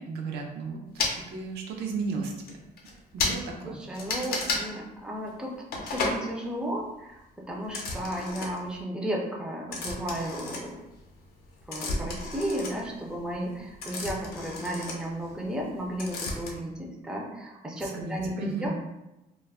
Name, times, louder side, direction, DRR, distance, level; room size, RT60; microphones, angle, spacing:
voice 1, 0.0-2.6 3.1-3.8 17.8-18.7, right 4 dB, 90° right, 1 dB, 0.6 m, -34 dB
sound 1, 1.0-1.2 2.0-2.1 2.5-2.6 2.8-2.9 3.2-3.4 3.9-4.6 5.7-6.2 7.7-8.7 9.7-11.1 11.4-15.7 16.0-16.5, left 3 dB, 70° left, 0.5 m, -32 dB
voice 2, 3.6-5.5 5.8-10.8 11.7-18.7, right 1 dB, 5° right, -1 dB, 0.4 m, -34 dB
2.3 x 2.0 x 3.4 m, 0.97 s
cardioid pair, 135°, 16 cm